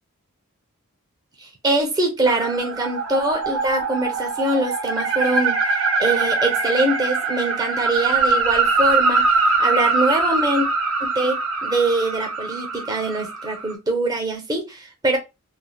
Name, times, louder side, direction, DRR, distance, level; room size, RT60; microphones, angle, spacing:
voice 1, 1.4-5.6 6.0-9.3 9.6-10.7 11.0-15.2, right 2 dB, 15° right, 0.6 m, -23 dB
sound 1, 2.3-13.7, right 4 dB, 65° right, 0.7 m, -22 dB
3.2 x 2.2 x 2.2 m
head